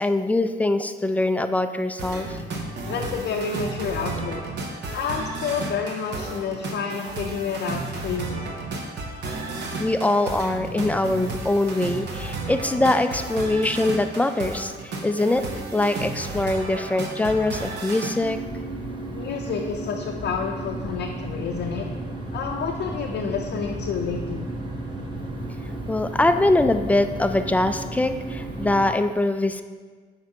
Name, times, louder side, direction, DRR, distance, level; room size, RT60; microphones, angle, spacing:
voice 1, 0.0-2.4 9.8-15.4 15.7-18.4 25.9-29.6, left 2 dB, 5° left, 9 dB, 0.3 m, -23 dB
sound 1, 2.0-18.2, right 2 dB, 60° right, 0.9 m, -33 dB
voice 2, 2.9-4.4 4.9-8.3 19.1-21.9 22.3-24.5, left 6 dB, 60° left, 1 dB, 0.5 m, -29 dB
sound 2, 18.2-28.9, right 2 dB, 25° right, 1.0 m, -33 dB
7.7 x 5.1 x 2.8 m, 1.5 s
cardioid pair, 90°, 20 cm